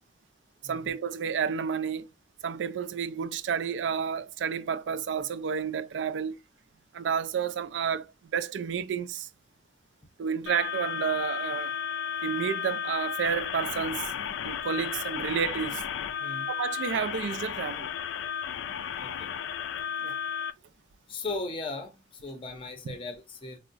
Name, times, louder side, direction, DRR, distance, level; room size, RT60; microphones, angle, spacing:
voice 1, 0.6-2.1 2.4-6.4 6.9-8.1 8.3-9.3 10.2-11.7 12.2-14.1 14.4-15.8 16.5-17.9 20.0-20.2 22.9-23.0, right 7 dB, 80° right, 0.4 m, -30 dB
sound 1, 10.5-20.5, left 8 dB, 85° left, 0.3 m, -33 dB
voice 2, 19.0-19.3 21.1-23.6, left 3 dB, 30° left, 0.5 m, -37 dB
4.5 x 2.0 x 2.5 m
head